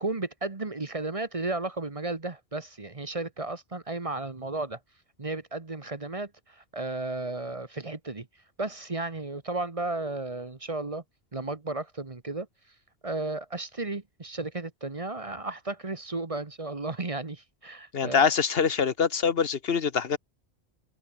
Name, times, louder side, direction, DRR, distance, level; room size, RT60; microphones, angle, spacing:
voice 1, 0.0-4.8 5.2-8.3 8.6-11.0 11.3-12.5 13.0-18.3, right 2 dB, 30° right, 1.3 m, -34 dB
voice 2, 17.9-20.2, left 6 dB, 65° left, 1.3 m, -24 dB
omnidirectional pair, 1.1 m